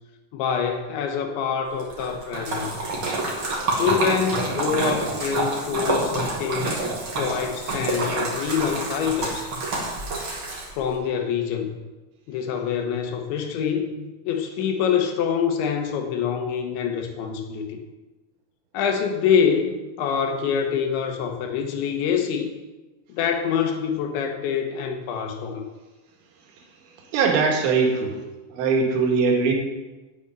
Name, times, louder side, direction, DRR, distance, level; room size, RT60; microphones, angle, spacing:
voice 1, 0.3-2.8 3.8-6.8 7.2-9.5 10.7-11.8 12.3-14.0 14.2-17.8 18.7-22.5 23.1-25.6, left 7 dB, 80° left, 4 dB, 3.3 m, -25 dB
Splash splatter, 1.8-10.9, right 2 dB, 40° right, 1.8 m, -27 dB
voice 2, 27.1-28.2 28.5-29.5, right 4 dB, 90° right, 1 dB, 4.4 m, -21 dB
8.7 x 8.7 x 8.7 m, 1.2 s
omnidirectional pair, 5.6 m